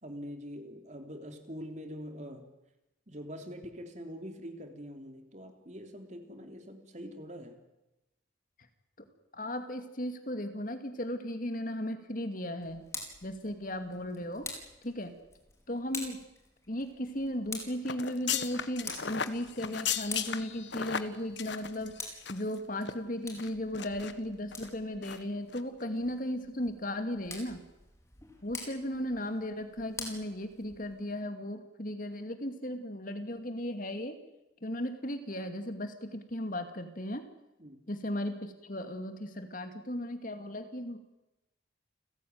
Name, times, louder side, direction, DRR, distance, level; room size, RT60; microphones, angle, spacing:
voice 1, 0.0-2.5 3.1-7.6 37.6-37.8, equal, 35° right, 6 dB, 3.4 m, -44 dB
voice 2, 9.3-12.8 13.2-14.5 14.8-15.1 15.7-16.2 16.7-21.9 22.3-27.6 28.4-34.2 34.6-37.2 37.9-41.0, left 1 dB, 45° left, 8 dB, 2.4 m, -36 dB
Tick, 12.6-31.0, left 3 dB, 15° left, 4.9 m, -47 dB
sound 1, 17.8-22.5 22.8-22.9 23.4-24.1 24.5-24.7 25.0-25.2 25.5-25.6, left 8 dB, 65° left, 1.4 m, -36 dB
30.0 x 15.5 x 9.5 m, 0.96 s
head